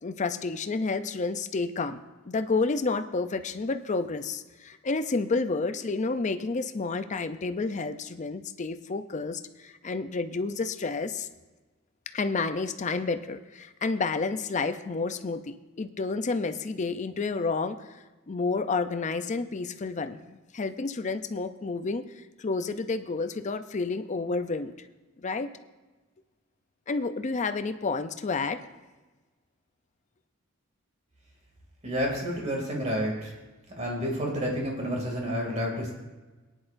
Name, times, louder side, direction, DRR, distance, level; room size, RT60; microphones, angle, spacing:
voice 1, 0.0-11.3 12.1-22.0 22.4-24.7 25.2-25.5 26.9-28.6, left 3 dB, 35° left, 9 dB, 0.5 m, -30 dB
voice 2, 31.8-33.3 33.8-35.9, equal, 35° right, -1 dB, 2.6 m, -30 dB
18.5 x 10.0 x 2.6 m, 1.2 s
head